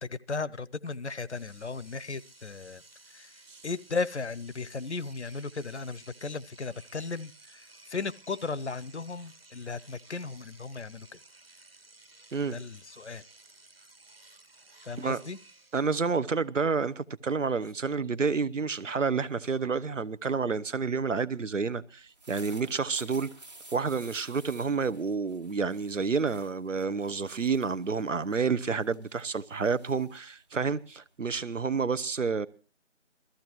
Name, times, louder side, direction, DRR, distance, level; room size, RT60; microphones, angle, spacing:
voice 1, 0.0-2.8 3.1-11.2 12.5-13.2 14.8-15.4, left 4 dB, 65° left, 0.7 m, -36 dB
Engine / Domestic sounds home sounds, 0.9-1.0 1.3-15.9, right 2 dB, 50° right, 1.7 m, -56 dB
voice 2, 15.7-23.3 23.7-32.5, right 5 dB, 80° right, 0.9 m, -29 dB
sound 1, 22.0-31.3, right 2 dB, 35° right, 1.6 m, -54 dB
21.0 x 14.0 x 3.0 m
figure-of-eight pair, 175°, 37 cm